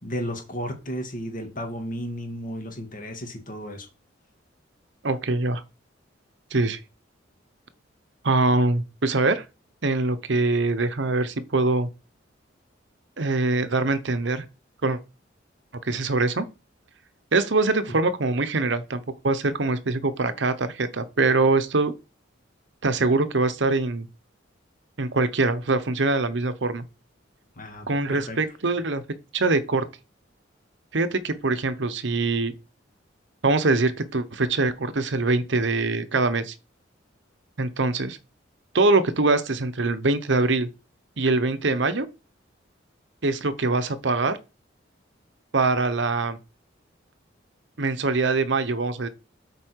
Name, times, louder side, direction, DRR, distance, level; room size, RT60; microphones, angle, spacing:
voice 1, 0.0-3.9 17.9-18.0 27.6-28.4, equal, 45° left, 2.3 m, -33 dB
voice 2, 5.0-5.6 6.5-6.8 8.2-9.4 9.8-11.9 13.2-14.4 14.8-15.0 15.8-16.5 17.3-21.9 22.8-24.1 25.0-26.8 27.9-29.0 29.3-29.8 30.9-32.5 33.4-36.5 37.6-38.2 38.7-40.7 41.2-42.1 43.2-44.4 45.5-46.4 47.8-49.1, right 3 dB, 65° right, 0.9 m, -23 dB
8.3 x 4.6 x 4.6 m
head